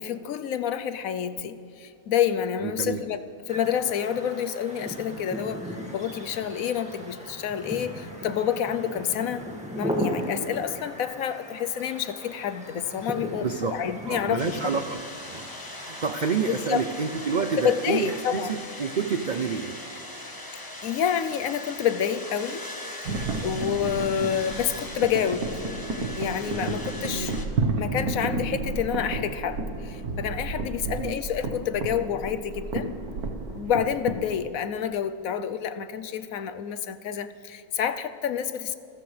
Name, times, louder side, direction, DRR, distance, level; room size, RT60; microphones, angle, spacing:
voice 1, 0.0-9.5 9.8-14.4 16.4-16.8 17.6-18.5 20.8-22.6 23.4-25.6 26.2-27.4 27.8-32.9 33.5-38.8, left 8 dB, 70° left, 11 dB, 1.1 m, -28 dB
voice 2, 2.6-3.0 13.4-13.8 14.1-15.0 15.2-15.5 15.8-19.8 27.1-27.3 30.8-31.2, right 6 dB, 65° right, 8 dB, 0.4 m, -29 dB
sound 1, 3.5-18.5, equal, 5° right, 1.9 m, -37 dB
sound 2, 14.4-27.5, left 1 dB, 15° left, 1.1 m, -40 dB
sound 3, 23.0-34.4, right 3 dB, 85° right, 1.7 m, -31 dB
27.0 x 14.5 x 3.3 m, 2.4 s
omnidirectional pair, 1.5 m